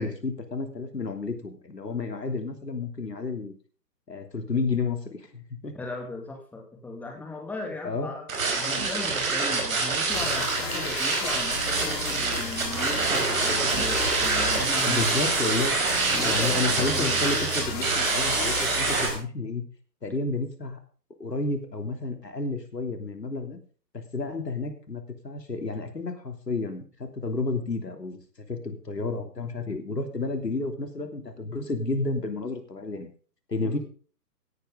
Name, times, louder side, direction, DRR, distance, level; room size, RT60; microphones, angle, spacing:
voice 1, 0.0-3.5 4.1-5.7 7.8-8.1 14.9-15.7 16.2-19.6 20.0-20.8 21.2-23.6 23.9-33.1 33.5-33.8, left 3 dB, 80° left, 6 dB, 3.2 m, -31 dB
voice 2, 5.7-8.3 8.6-15.1 16.1-17.2 33.6-33.8, left 2 dB, 5° left, 2 dB, 2.2 m, -37 dB
sound 1, 8.3-19.1, right 4 dB, 55° right, 5.1 m, -26 dB
sound 2, 10.1-19.2, left 4 dB, 30° left, 4.9 m, -34 dB
16.5 x 10.5 x 3.8 m, 0.41 s
figure-of-eight pair, 140°, 49 cm